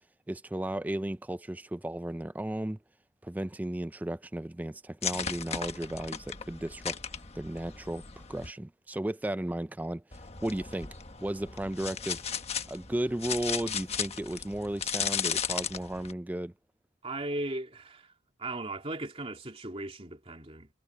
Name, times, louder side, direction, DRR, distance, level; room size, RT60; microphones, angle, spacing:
voice 1, 0.3-2.8 3.2-10.9 11.2-12.2 12.7-16.5, right 1 dB, 10° right, 0.3 m, -35 dB
sound 1, 5.0-8.5 10.1-16.1, left 7 dB, 35° left, 1.3 m, -36 dB
voice 2, 17.0-18.1 18.4-20.7, right 2 dB, 30° right, 3.1 m, -37 dB
head